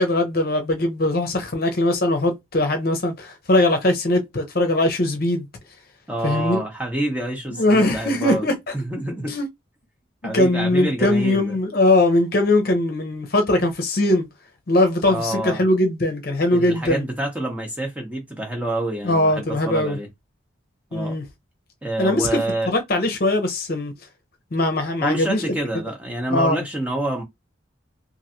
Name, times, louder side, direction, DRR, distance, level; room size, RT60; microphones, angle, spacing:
voice 1, 0.0-5.5 6.2-6.6 7.5-8.5 9.2-9.5 10.2-14.3 14.7-17.1 19.0-20.0 20.9-21.2 22.0-23.9 24.5-25.6 26.3-26.6, left 1 dB, 50° left, 0.7 m, -20 dB
voice 2, 6.1-8.5 8.7-9.4 10.2-11.6 15.1-15.6 16.5-20.1 20.9-21.1 21.8-22.7 25.0-27.2, right 1 dB, 5° right, 0.8 m, -27 dB
3.1 x 2.6 x 2.7 m
head